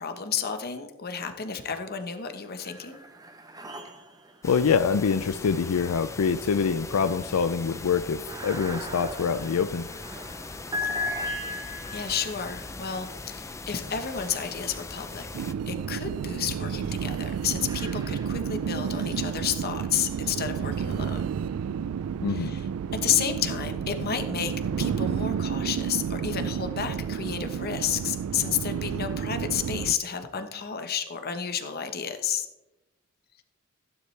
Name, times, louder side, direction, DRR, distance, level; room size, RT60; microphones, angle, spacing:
voice 1, 0.0-3.0 11.9-15.3 15.7-21.3 22.3-22.7 22.9-24.5 24.8-32.5, left 8 dB, 45° left, 7 dB, 1.0 m, -31 dB
sound 1, 1.1-1.8 2.1-15.3 15.9-20.4, left 2 dB, 15° right, 0.8 m, -40 dB
voice 2, 4.4-9.9 22.2-22.5, left 6 dB, 85° left, 12 dB, 0.4 m, -25 dB
sound 2, 4.4-15.5, left 3 dB, 15° left, 0.4 m, -40 dB
sound 3, 15.3-29.9, right 7 dB, 85° right, 0.3 m, -31 dB
15.0 x 9.7 x 3.3 m, 1.0 s
head